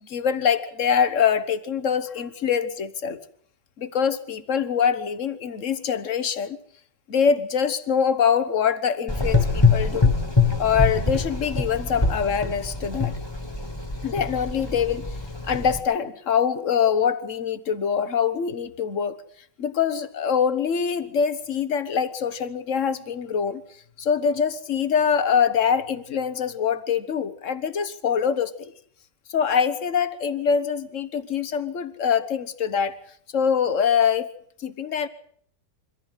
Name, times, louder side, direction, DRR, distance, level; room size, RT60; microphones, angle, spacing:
voice 1, 0.0-3.2 3.8-6.6 7.1-10.1 10.6-13.1 14.0-15.0 15.4-19.2 19.6-23.6 24.0-28.7 29.3-33.0 33.3-34.3 34.6-35.1, left 7 dB, 50° left, 13 dB, 1.4 m, -24 dB
Gurgling / Engine, 9.1-15.8, left 4 dB, 15° left, 1.9 m, -24 dB
24.0 x 15.0 x 8.1 m, 0.62 s
omnidirectional pair, 1.9 m